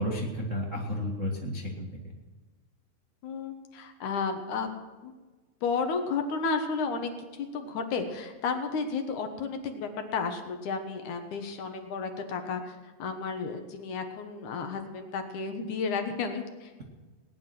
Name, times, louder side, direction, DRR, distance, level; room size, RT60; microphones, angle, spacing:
voice 1, 0.0-1.9, equal, 90° right, -2 dB, 0.6 m, -32 dB
voice 2, 3.2-4.7 5.0-5.1 5.6-16.8, left 5 dB, 65° left, 6 dB, 2.1 m, -32 dB
19.0 x 11.0 x 6.0 m, 1.3 s
omnidirectional pair, 4.8 m